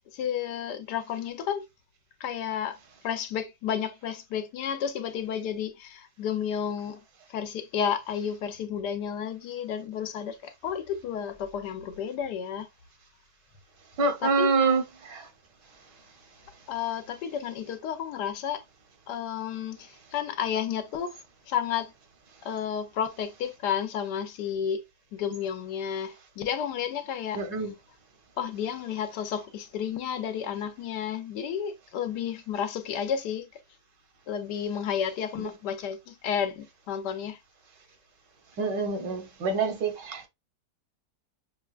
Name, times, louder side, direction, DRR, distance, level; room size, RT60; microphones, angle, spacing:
voice 1, 0.1-1.6 2.2-2.8 3.0-7.0 7.3-12.7 14.2-14.6 16.7-18.6 19.1-21.1 21.5-21.9 22.4-24.8 25.1-27.7 28.4-33.5 34.3-37.4, left 8 dB, 75° left, 1.2 m, -31 dB
voice 2, 14.0-14.8 15.1-15.2 27.3-27.7 38.6-40.3, right 4 dB, 80° right, 1.6 m, -26 dB
5.9 x 2.2 x 2.3 m
omnidirectional pair, 1.9 m